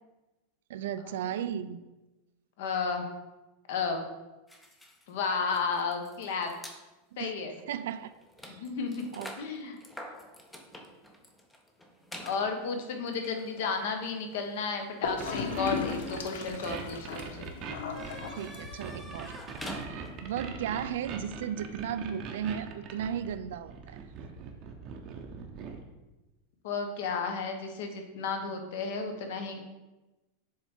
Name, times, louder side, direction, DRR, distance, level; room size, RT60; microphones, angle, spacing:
voice 1, 0.7-1.9 7.2-7.3 7.7-8.1 8.4-8.7 9.1-9.3 10.0-10.1 18.4-19.4 19.8-24.0, right 9 dB, 75° right, 13 dB, 0.3 m, -35 dB
voice 2, 2.6-3.1 3.7-4.1 5.1-6.5 7.2-7.5 8.6-9.1 9.4-9.8 12.2-17.5 26.6-29.6, left 5 dB, 60° left, 5 dB, 1.0 m, -33 dB
sound 1, 4.5-6.8 7.5-7.7 7.9-20.4, equal, 5° left, 0.6 m, -48 dB
Gurgling / Toilet flush, 15.0-19.0, left 5 dB, 90° left, 0.8 m, -36 dB
sound 2, 15.2-25.8, right 6 dB, 35° right, 0.7 m, -42 dB
7.0 x 3.4 x 4.4 m, 1.1 s
supercardioid pair, 165°, 0 cm